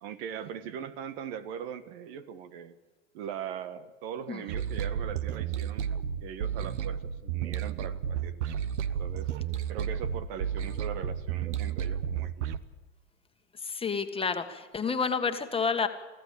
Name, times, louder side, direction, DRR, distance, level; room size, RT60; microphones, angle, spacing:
voice 1, 0.0-2.8 3.1-5.9 6.2-8.6 9.0-9.3 9.7-12.5, right 8 dB, 60° right, 13 dB, 1.5 m, -40 dB
sound 1, 4.5-12.6, right 9 dB, 75° right, 1.1 m, -32 dB
voice 2, 13.6-15.9, left 5 dB, 15° left, 7 dB, 1.7 m, -29 dB
24.0 x 15.0 x 8.5 m, 1.3 s
hypercardioid pair, 95°, 35 cm